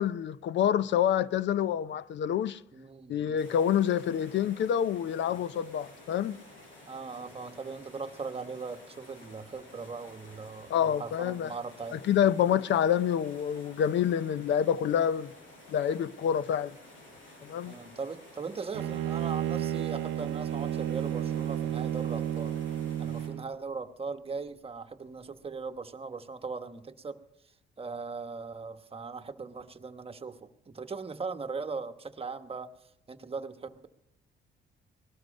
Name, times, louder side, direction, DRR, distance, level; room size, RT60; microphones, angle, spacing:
voice 1, 0.0-2.6 3.1-6.4 10.7-11.5 11.9-15.3 15.7-16.7 17.4-17.7, left 9 dB, 65° left, 0.6 m, -27 dB
voice 2, 2.7-3.4 5.3-5.4 6.9-12.0 17.6-22.5 23.0-27.2 27.8-32.7 33.1-33.9, right 4 dB, 30° right, 1.1 m, -39 dB
sound 1, 3.4-23.3, left 1 dB, 90° left, 7.0 m, -52 dB
Bowed string instrument, 18.7-23.5, right 10 dB, 85° right, 0.6 m, -32 dB
20.0 x 12.5 x 5.3 m
cardioid pair, 90°, 20 cm